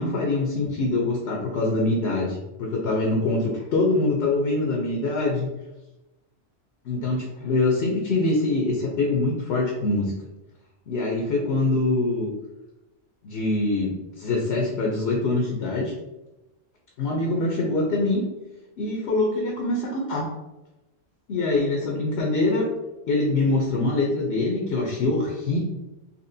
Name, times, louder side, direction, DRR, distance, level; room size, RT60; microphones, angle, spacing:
voice 1, 0.0-5.5 6.8-10.1 10.9-12.3 13.2-15.9 17.0-18.2 18.8-20.3 21.3-22.7 23.1-25.6, left 2 dB, 60° left, -1 dB, 0.9 m, -24 dB
4.2 x 2.9 x 2.6 m, 1.0 s
omnidirectional pair, 1.3 m